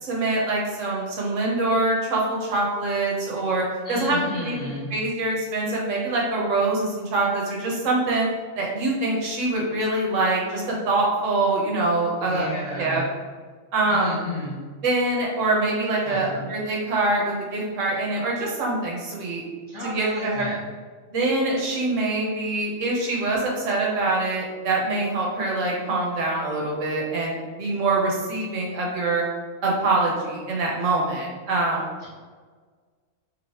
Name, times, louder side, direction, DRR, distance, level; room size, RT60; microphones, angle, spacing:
voice 1, 0.0-8.3 8.6-12.5 12.8-13.0 13.7-14.2 14.8-19.4 19.8-20.4 21.1-29.2 29.6-31.9, right 2 dB, 70° right, -3 dB, 1.1 m, -24 dB
voice 2, 3.8-4.9 12.2-13.1 13.9-14.6 16.0-16.3 19.7-20.6 32.0-32.1, left 1 dB, 25° left, -10 dB, 0.7 m, -33 dB
3.1 x 2.8 x 2.7 m, 1.5 s
omnidirectional pair, 1.4 m